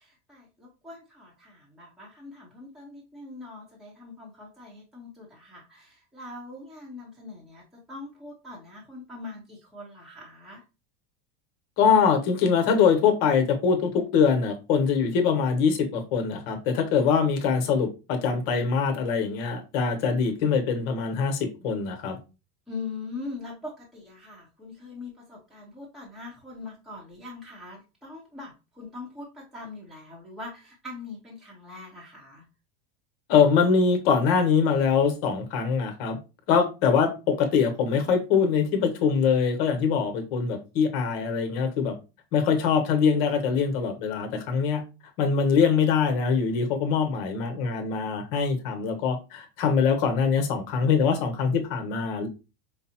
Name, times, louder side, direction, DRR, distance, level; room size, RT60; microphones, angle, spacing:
voice 1, 0.0-10.6 22.7-32.4, left 3 dB, ahead, -4 dB, 0.8 m, -42 dB
voice 2, 11.8-22.2 33.3-36.2 36.5-41.9 42.3-44.8 45.2-52.3, left 6 dB, 60° left, 6 dB, 1.1 m, -23 dB
4.9 x 2.0 x 2.8 m, 0.30 s
supercardioid pair, 135°, 32 cm